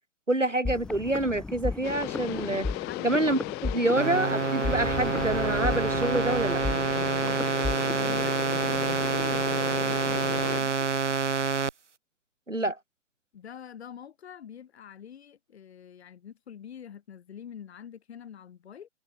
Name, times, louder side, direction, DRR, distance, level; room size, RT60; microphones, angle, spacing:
voice 1, 0.3-2.7 3.0-6.6 12.5-12.8, right 2 dB, 90° right, 3.3 m, -27 dB
sound 1, 0.6-8.2, left 3 dB, ahead, 0.4 m, -35 dB
sound 2, 1.8-10.6, left 29 dB, 25° left, 1.3 m, -35 dB
voice 2, 2.9-3.2 3.8-4.3 7.2-7.5 7.9-11.0 13.3-18.9, left 8 dB, 60° left, 6.8 m, -45 dB
sound 3, 4.0-11.7, right 5 dB, 75° right, 2.3 m, -27 dB
figure-of-eight pair, 110°, 36 cm